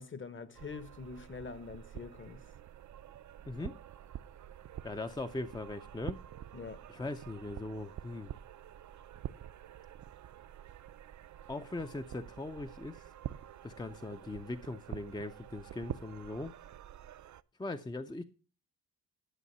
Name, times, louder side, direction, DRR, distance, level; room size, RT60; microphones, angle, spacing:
voice 1, 0.0-2.4 6.5-6.8, left 4 dB, 30° left, 0.9 m, -45 dB
sound 1, 0.5-17.4, right 11 dB, 50° right, 0.5 m, -47 dB
voice 2, 4.8-6.2 6.9-8.3 11.5-13.0 13.6-16.5 17.6-18.2, left 2 dB, 10° left, 0.4 m, -40 dB
11.5 x 6.4 x 5.3 m
cardioid pair, 105°, 37 cm